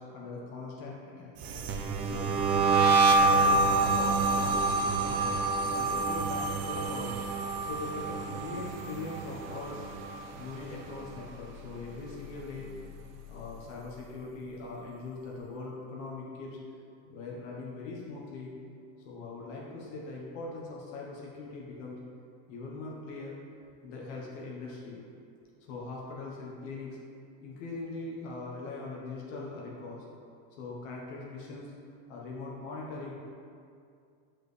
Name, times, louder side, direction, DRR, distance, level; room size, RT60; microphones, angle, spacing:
voice 1, 0.0-1.3 2.1-7.2 7.7-9.8 10.4-12.7 13.3-16.6 17.1-18.5 19.0-22.0 22.5-23.4 23.8-25.0 25.6-27.0 27.4-30.0 30.6-31.7 32.1-33.1, left 3 dB, 75° left, -3 dB, 1.2 m, -41 dB
sound 1, 1.4-10.6 10.8-11.3 11.6-13.2, right 3 dB, 45° right, 0.6 m, -27 dB
6.3 x 4.7 x 3.3 m, 2.4 s
supercardioid pair, 140°, 37 cm